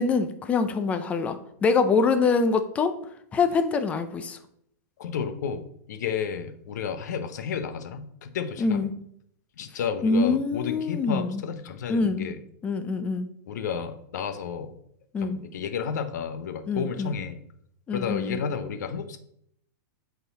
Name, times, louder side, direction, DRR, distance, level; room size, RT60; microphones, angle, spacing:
voice 1, 0.0-2.9 3.3-4.4 8.6-8.9 10.0-11.4 11.9-12.3 12.6-13.3 15.1-15.4 16.7-17.2 17.9-18.4, left 4 dB, 15° left, 9 dB, 0.4 m, -25 dB
voice 2, 5.0-8.8 9.6-12.4 13.5-14.7 15.2-17.4 17.9-19.2, left 7 dB, 75° left, 10 dB, 0.8 m, -32 dB
8.2 x 4.0 x 4.0 m, 0.70 s
supercardioid pair, 160°, 9 cm